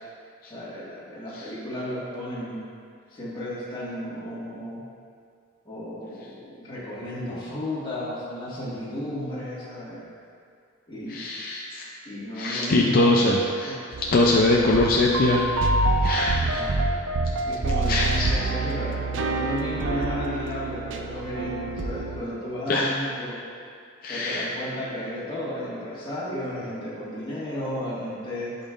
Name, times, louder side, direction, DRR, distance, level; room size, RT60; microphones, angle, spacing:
voice 1, 0.5-2.6 3.1-4.8 5.6-10.0 10.9-11.2 12.1-13.3 13.6-14.0 16.4-16.8 17.4-23.4 24.0-28.6, equal, 20° left, -10 dB, 1.8 m, -33 dB
voice 2, 11.1-11.9 12.4-13.7 14.1-15.7 16.0-16.6 17.9-18.4 22.7-22.9 24.0-24.5, left 2 dB, 40° left, -2 dB, 0.4 m, -22 dB
sound 1, 13.9-22.2, right 2 dB, 55° right, 0.5 m, -27 dB
11.0 x 5.4 x 2.5 m, 2.2 s
head